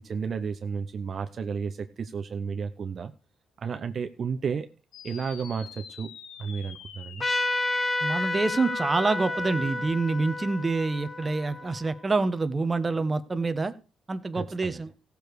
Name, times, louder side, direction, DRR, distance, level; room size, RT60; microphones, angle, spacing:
voice 1, 0.0-3.1 3.6-4.7 5.0-7.3 14.3-14.8, right 6 dB, 50° right, 7 dB, 0.8 m, -32 dB
sound 1, 4.9-9.9, left 8 dB, 85° left, 1.3 m, -45 dB
Trumpet, 7.2-12.3, left 2 dB, 25° left, 1.2 m, -31 dB
voice 2, 8.0-13.7 14.1-14.9, right 3 dB, 25° right, 11 dB, 1.1 m, -27 dB
15.5 x 6.8 x 4.8 m, 0.34 s
cardioid pair, 90°, 0 cm